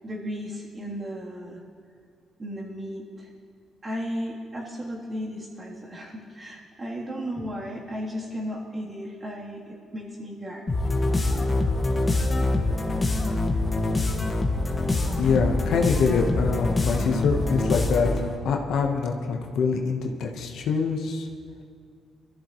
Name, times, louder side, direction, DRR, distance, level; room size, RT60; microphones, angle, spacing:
voice 1, 0.0-1.6 2.4-3.3 3.8-11.1, equal, 30° right, -4 dB, 3.2 m, -35 dB
sound 1, 10.7-18.4, left 2 dB, 25° left, 1.6 m, -25 dB
voice 2, 15.2-18.1 18.4-21.3, left 5 dB, 75° left, 2 dB, 1.2 m, -24 dB
21.0 x 14.0 x 3.2 m, 2.2 s
cardioid pair, 90°, 0 cm